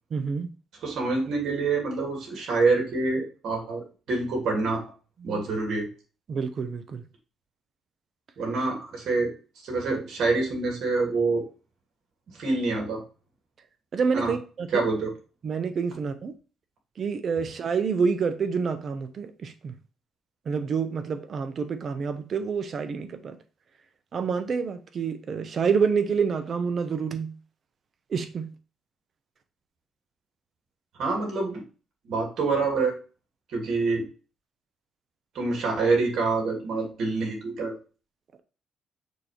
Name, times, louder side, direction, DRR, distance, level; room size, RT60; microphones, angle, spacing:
voice 1, 0.1-0.5 5.2-5.4 6.3-7.0 13.9-14.8 15.4-16.3 17.0-19.7 20.5-23.4 24.1-27.3 28.1-28.5, right 5 dB, 50° right, 0.9 m, -28 dB
voice 2, 0.8-4.8 5.2-5.9 8.4-9.3 9.6-11.4 12.3-13.0 14.1-14.3 14.7-15.1 31.0-31.6 32.0-33.0 33.5-34.1 35.3-37.7, right 3 dB, 70° right, 2.8 m, -26 dB
6.7 x 3.0 x 5.1 m
cardioid pair, 90°, 0 cm